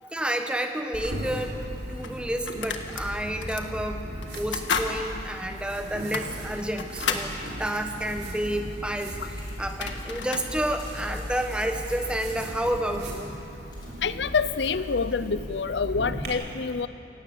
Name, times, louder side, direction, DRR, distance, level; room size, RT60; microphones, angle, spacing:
voice 1, 0.0-1.6 1.9-7.3 7.6-9.2 9.6-13.4, right 1 dB, 5° right, 5 dB, 1.3 m, -30 dB
sound 1, 0.9-16.3, equal, 60° right, 4.2 m, -37 dB
sound 2, 2.0-3.1 3.4-3.7 4.2-4.9 5.3-5.4 6.0-7.3 9.3-9.4 9.6-10.5, left 6 dB, 85° left, 1.6 m, -32 dB
sound 3, 7.2-14.8, left 2 dB, 25° left, 3.9 m, -53 dB
voice 2, 14.0-16.9, left 5 dB, 70° left, 14 dB, 0.6 m, -27 dB
28.0 x 17.5 x 7.2 m, 2.8 s
head